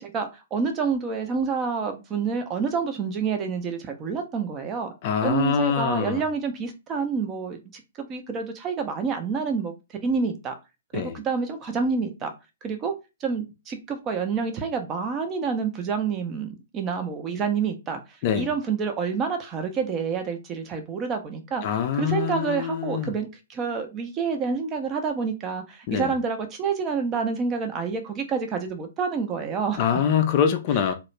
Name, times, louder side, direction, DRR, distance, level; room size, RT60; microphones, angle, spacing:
voice 1, 0.0-4.9 5.2-10.6 10.9-12.3 12.6-21.6 21.9-29.9, right 5 dB, 20° right, 0.5 m, -28 dB
voice 2, 5.0-6.2 10.9-11.1 18.2-18.5 21.6-23.1 25.9-26.1 29.8-30.9, left 8 dB, 35° left, 0.3 m, -24 dB
2.3 x 2.1 x 3.0 m
figure-of-eight pair, 115°, 0 cm